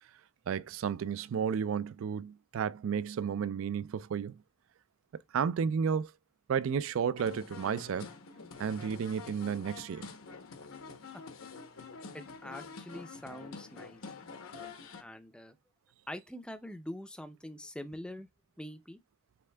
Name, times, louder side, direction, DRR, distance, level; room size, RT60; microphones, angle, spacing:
voice 1, 0.5-4.4 5.3-6.1 6.5-8.1 8.6-10.1, right 7 dB, 70° right, 0.3 m, -32 dB
sound 1, 7.2-15.0, left 4 dB, 80° left, 0.8 m, -47 dB
voice 2, 12.1-14.1 15.0-15.6 16.1-18.3 18.6-19.0, left 1 dB, 5° left, 0.4 m, -44 dB
6.9 x 3.4 x 2.2 m
head